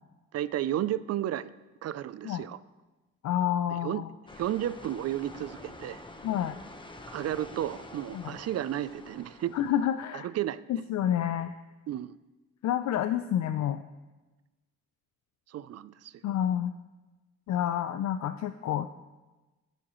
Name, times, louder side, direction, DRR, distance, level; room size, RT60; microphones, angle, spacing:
voice 1, 0.3-1.5 1.8-2.6 3.7-4.0 4.4-6.0 7.1-9.6 10.1-10.6 11.9-12.1 15.5-16.1, right 12 dB, 55° right, 17 dB, 0.5 m, -33 dB
voice 2, 3.2-4.1 6.2-6.6 8.1-8.3 9.5-10.3 10.7-11.5 12.6-13.8 16.2-16.7 17.5-18.9, left 10 dB, 65° left, 9 dB, 0.5 m, -29 dB
sound 1, 4.3-9.8, left 2 dB, 15° left, 1.1 m, -47 dB
12.5 x 11.0 x 3.1 m, 1.2 s
cardioid pair, 90°, 30 cm